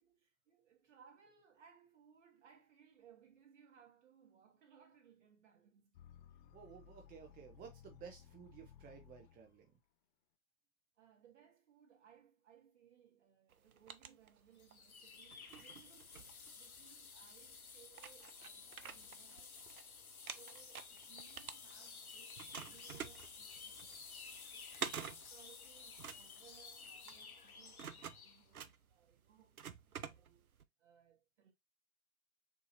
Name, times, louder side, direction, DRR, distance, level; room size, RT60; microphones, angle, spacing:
voice 1, 0.0-6.0 11.0-19.9 20.4-24.7 25.3-30.5 30.8-31.5, right 8 dB, 55° right, 2.1 m, -66 dB
sound 1, 5.9-9.7, left 9 dB, 40° left, 0.5 m, -60 dB
voice 2, 6.5-9.7, right 7 dB, 20° right, 0.8 m, -55 dB
sound 2, 13.5-14.8 15.3-17.0 17.5-17.6 17.9-19.8 20.1-22.0 22.4-30.6, right 7 dB, 85° right, 0.7 m, -49 dB
sound 3, 14.6-28.4, left 5 dB, 85° left, 1.0 m, -54 dB
6.9 x 2.8 x 2.7 m
figure-of-eight pair, 100°, 42 cm